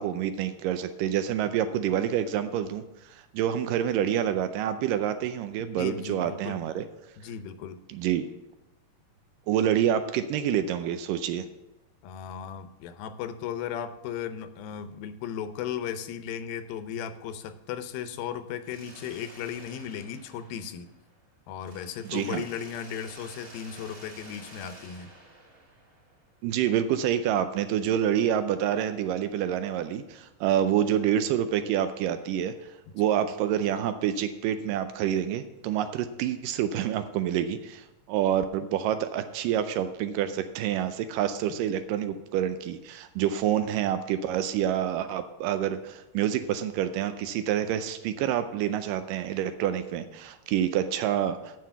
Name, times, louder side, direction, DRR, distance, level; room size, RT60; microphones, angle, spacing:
voice 1, 0.0-2.8 3.1-6.9 7.9-8.3 9.5-11.5 22.1-22.5 26.4-32.5 32.9-51.5, right 10 dB, 80° right, 10 dB, 2.1 m, -27 dB
voice 2, 5.6-6.6 7.2-7.8 12.0-20.9 21.5-25.1, left 8 dB, 85° left, 11 dB, 2.5 m, -36 dB
Mechanisms, 18.6-21.2 21.6-26.4, right 1 dB, 25° right, 1.3 m, -51 dB
7.8 x 7.5 x 6.9 m, 0.94 s
omnidirectional pair, 4.1 m